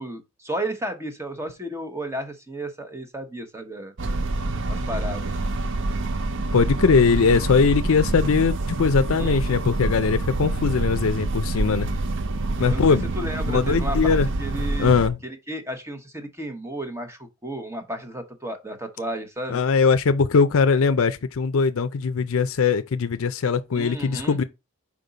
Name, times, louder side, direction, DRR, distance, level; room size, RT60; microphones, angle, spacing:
voice 1, 0.0-3.9 4.7-5.3 9.2-9.6 12.7-14.9 15.2-19.6 23.7-24.4, right 1 dB, 10° right, 0.9 m, -33 dB
sound 1, 4.0-15.1, right 2 dB, 55° right, 0.5 m, -26 dB
voice 2, 6.5-11.9 12.6-13.1 13.4-14.3 14.8-15.2 19.5-24.4, left 5 dB, 65° left, 0.5 m, -20 dB
5.2 x 4.9 x 4.0 m
head